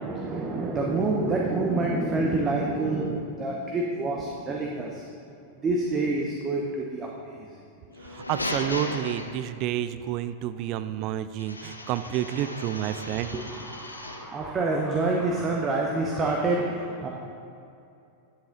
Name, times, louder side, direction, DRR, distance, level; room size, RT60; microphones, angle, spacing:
voice 1, 0.0-7.7 8.0-8.1 10.5-10.6 11.6-17.1, right 2 dB, 25° right, -1 dB, 0.9 m, -28 dB
sound 1, 7.9-9.8 11.4-14.4, left 2 dB, 80° left, 0.6 m, -36 dB
voice 2, 8.1-13.3, right 12 dB, 40° right, 12 dB, 0.4 m, -30 dB
10.5 x 7.3 x 3.9 m, 2.6 s
figure-of-eight pair, 90°, 0 cm